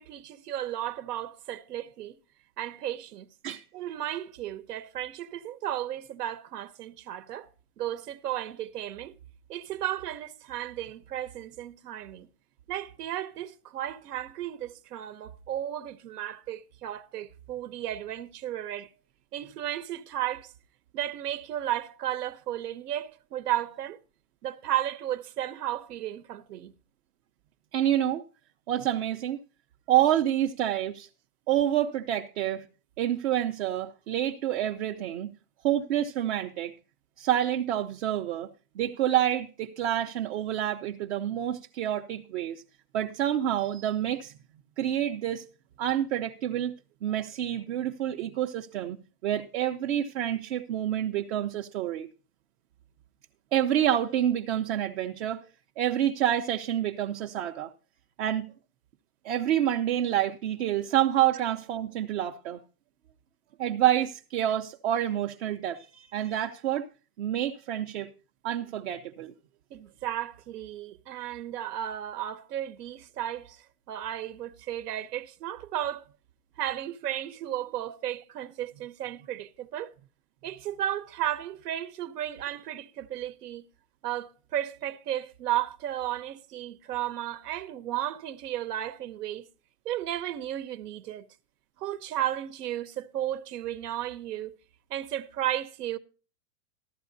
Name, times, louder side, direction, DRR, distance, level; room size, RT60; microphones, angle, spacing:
voice 1, 0.0-2.2 2.6-3.3 3.7-7.5 7.8-9.1 9.5-12.3 12.7-18.9 19.3-20.5 20.9-24.0 24.4-26.7 69.7-73.6 73.9-76.0 76.6-79.9 80.4-83.6 84.0-89.5 89.8-91.2 91.8-94.5 94.9-96.0, right 12 dB, 80° right, 1.1 m, -34 dB
voice 2, 27.7-28.2 28.7-29.4 29.9-31.1 31.5-32.6 33.0-35.3 35.6-36.7 37.2-38.5 38.7-42.6 42.9-44.3 44.8-45.4 45.8-46.7 47.0-52.1 53.5-55.4 55.8-57.7 58.2-58.5 59.2-62.6 63.6-66.9 67.2-68.1 68.4-69.3, right 11 dB, 45° right, 0.8 m, -28 dB
14.5 x 12.0 x 2.6 m
supercardioid pair, 160°, 46 cm